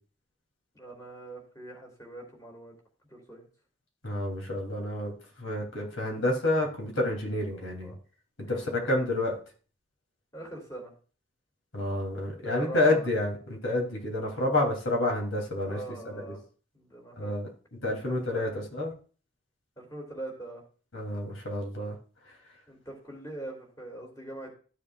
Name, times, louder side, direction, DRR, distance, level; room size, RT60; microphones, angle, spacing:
voice 1, 0.7-2.7 3.1-3.5 5.7-5.9 7.5-8.0 8.4-9.1 10.3-10.9 12.4-13.1 15.6-16.4 16.7-17.4 18.0-18.6 19.8-20.6 22.7-24.5, right 2 dB, 15° left, 0 dB, 2.5 m, -42 dB
voice 2, 4.0-5.1 5.4-7.9 8.7-9.3 11.7-15.8 16.0-16.2 17.2-17.5 17.8-18.9 20.9-22.0, left 1 dB, 80° left, 0 dB, 3.0 m, -29 dB
13.5 x 7.0 x 2.4 m, 0.39 s
head